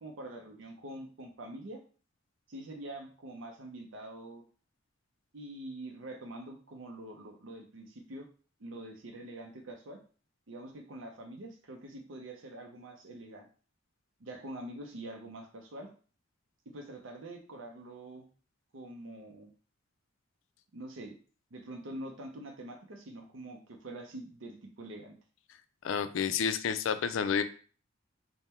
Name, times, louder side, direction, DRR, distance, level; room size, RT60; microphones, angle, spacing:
voice 1, 0.0-1.8 2.5-4.4 5.3-8.3 8.6-10.0 10.5-13.5 14.2-15.9 16.7-18.3 18.7-19.5 20.7-21.2 21.5-25.1, right 1 dB, 70° right, 2 dB, 0.6 m, -45 dB
voice 2, 25.8-27.4, left 7 dB, 75° left, 10 dB, 0.4 m, -30 dB
3.6 x 2.1 x 4.2 m, 0.40 s
head